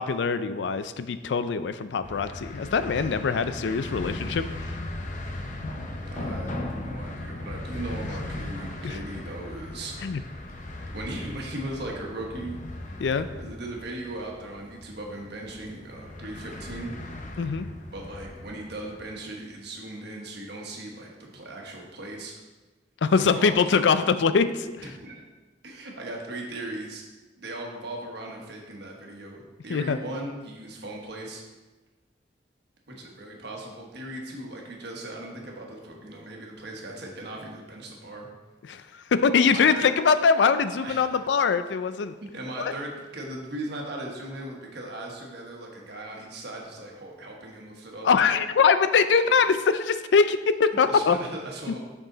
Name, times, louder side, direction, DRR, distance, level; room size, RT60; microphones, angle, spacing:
voice 1, 0.0-4.8 8.8-9.0 10.0-10.2 13.0-13.3 17.4-17.7 23.0-24.7 29.7-30.0 38.7-42.1 42.6-42.7 48.0-51.2, left 5 dB, 75° left, 12 dB, 0.4 m, -23 dB
sound 1, 2.0-19.3, left 1 dB, 45° left, 0.7 m, -37 dB
voice 2, 6.0-9.9 10.9-12.6 13.3-17.0 17.9-22.3 23.1-23.8 24.8-25.2 25.6-27.0 27.4-31.4 32.9-38.3 39.5-39.9 40.7-41.2 42.3-48.1 50.8-51.8, right 1 dB, 65° right, -1 dB, 1.4 m, -38 dB
6.5 x 6.1 x 3.9 m, 1.2 s
head